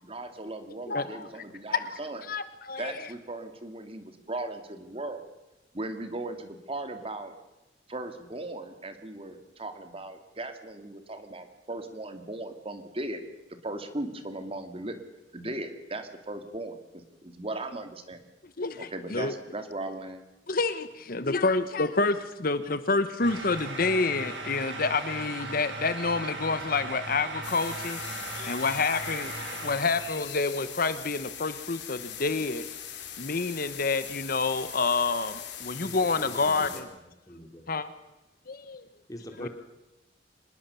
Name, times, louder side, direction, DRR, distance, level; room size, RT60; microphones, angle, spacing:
voice 1, 0.0-2.2 2.8-5.3 5.7-7.3 7.9-13.2 13.6-15.0 15.3-18.2 18.8-20.2, right 2 dB, 30° right, 8 dB, 2.3 m, -37 dB
voice 2, 0.9-1.3 1.7-2.0 2.3-3.1 18.6-19.3 20.5-28.0 28.4-32.7 33.2-36.9 37.7-37.9 38.5-38.9 39.4-39.5, left 3 dB, 50° left, 12 dB, 1.1 m, -28 dB
sound 1, 23.2-30.2, right 3 dB, 75° right, 6.4 m, -38 dB
sound 2, 27.4-36.8, left 9 dB, 75° left, 3.6 m, -41 dB
voice 3, 35.8-37.7 39.1-39.5, left 1 dB, 20° left, 5 dB, 3.1 m, -43 dB
25.0 x 20.5 x 7.0 m, 0.98 s
head